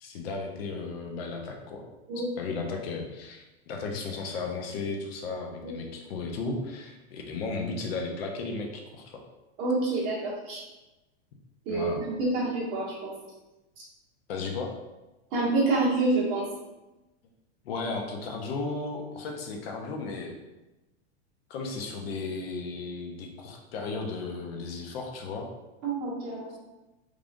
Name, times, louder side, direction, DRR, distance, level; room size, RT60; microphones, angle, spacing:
voice 1, 0.0-1.8 2.4-9.2 11.7-12.1 14.3-14.8 17.6-20.3 21.5-25.5, left 3 dB, 60° left, 2 dB, 0.7 m, -35 dB
voice 2, 9.6-10.6 11.6-13.1 15.3-16.4 25.8-26.5, right 2 dB, 40° right, -6 dB, 1.3 m, -27 dB
3.6 x 3.3 x 2.5 m, 1.0 s
supercardioid pair, 165°, 33 cm